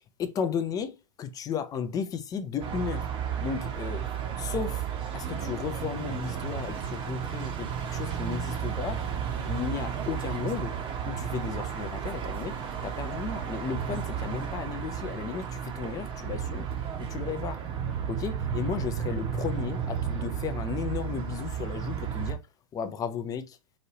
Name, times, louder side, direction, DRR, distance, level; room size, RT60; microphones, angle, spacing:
voice 1, 0.2-3.1 3.4-4.1 4.4-4.9 5.1-9.0 9.5-10.8 11.1-12.6 12.8-16.7 17.0-17.6 18.1-22.4 22.7-23.6, left 7 dB, 20° left, 0.5 m, -34 dB
sound 1, 2.6-22.3, right 8 dB, 30° right, 0.8 m, -33 dB
3.0 x 2.7 x 2.7 m
hypercardioid pair, 110°, 17 cm